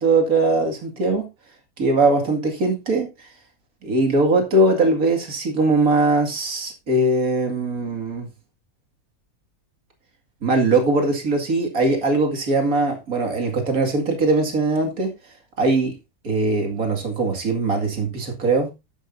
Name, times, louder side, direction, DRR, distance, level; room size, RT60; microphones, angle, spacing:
voice 1, 0.0-1.3 1.8-3.3 3.8-8.3 10.4-15.1 15.6-15.9 16.2-18.7, right 2 dB, 70° right, 3 dB, 2.7 m, -20 dB
11.5 x 9.7 x 2.7 m, 0.25 s
omnidirectional pair, 1.6 m